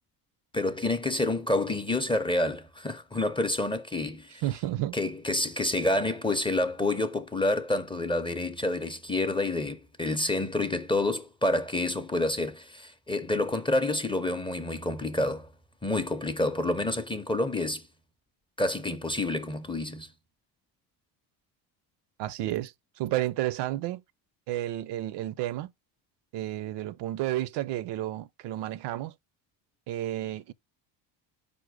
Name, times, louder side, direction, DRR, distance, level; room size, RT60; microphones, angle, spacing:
voice 1, 0.5-4.4 4.9-15.5 15.8-17.8 18.6-20.1, left 2 dB, 10° left, 0.5 m, -28 dB
voice 2, 4.4-5.0 22.2-24.0 24.5-25.7 26.3-29.1 29.9-30.5, right 14 dB, 60° right, 0.5 m, -31 dB
5.1 x 2.1 x 4.7 m
supercardioid pair, 85°, 48 cm